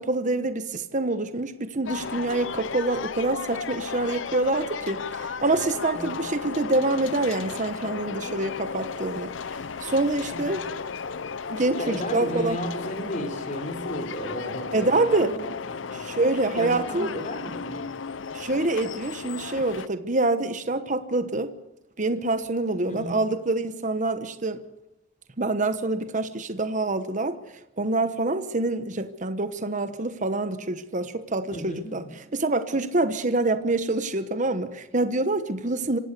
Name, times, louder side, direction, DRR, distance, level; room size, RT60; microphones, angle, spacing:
voice 1, 0.0-9.3 9.8-10.6 11.5-12.6 14.7-15.3 15.9-17.1 18.3-21.5 22.0-24.6 25.4-27.4 27.8-32.0 32.3-36.0, right 2 dB, 40° right, 1.1 m, -26 dB
sound 1, 1.8-19.9, left 5 dB, 85° left, 0.7 m, -34 dB
voice 2, 11.8-15.4 15.7-16.0 16.6-17.8 22.9-23.2 31.5-32.2, equal, 40° left, 3.9 m, -34 dB
26.0 x 16.5 x 6.8 m
head